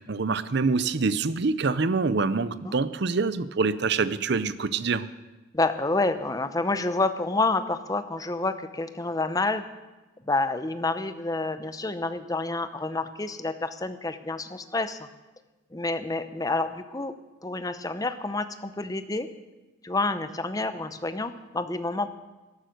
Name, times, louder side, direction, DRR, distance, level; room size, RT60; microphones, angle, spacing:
voice 1, 0.1-5.1, right 4 dB, 55° right, 15 dB, 0.6 m, -25 dB
voice 2, 5.5-9.6 10.2-15.1 15.7-17.1 17.4-19.3 19.8-22.1, left 3 dB, 20° left, 11 dB, 0.7 m, -28 dB
13.0 x 12.0 x 6.5 m, 1.1 s
head